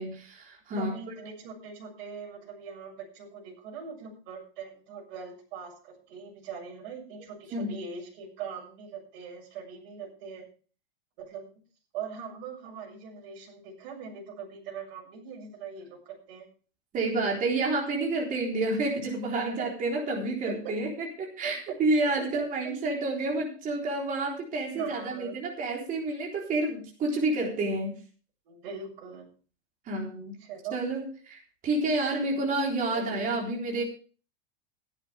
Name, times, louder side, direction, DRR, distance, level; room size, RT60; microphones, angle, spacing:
voice 1, 0.0-0.9 7.5-7.7 16.9-28.0 29.9-30.3 30.7-33.8, right 2 dB, 25° right, -1 dB, 3.8 m, -29 dB
voice 2, 0.7-10.4 11.2-11.4 11.9-16.5 18.5-19.0 19.5-19.6 20.2-20.5 21.4-22.5 24.7-25.3 28.4-29.3 30.4-30.8 32.1-32.2 32.9-33.3, right 6 dB, 60° right, 0 dB, 6.6 m, -41 dB
16.0 x 11.0 x 3.5 m, 0.39 s
supercardioid pair, 155°, 30 cm